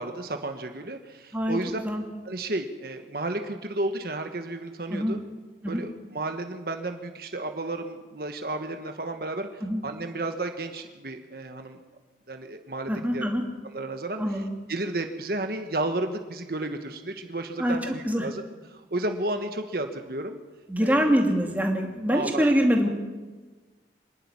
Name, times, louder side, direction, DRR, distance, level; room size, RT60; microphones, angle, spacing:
voice 1, 0.0-1.8 2.2-5.2 5.7-11.8 12.3-13.3 13.6-14.4 14.7-18.4 18.7-20.4 20.8-21.1 22.1-22.5, right 2 dB, 55° right, 5 dB, 1.4 m, -32 dB
voice 2, 12.9-13.4 14.2-14.5 17.6-18.3 20.7-22.9, equal, 10° right, 1 dB, 2.5 m, -24 dB
25.5 x 12.0 x 9.7 m, 1.3 s
head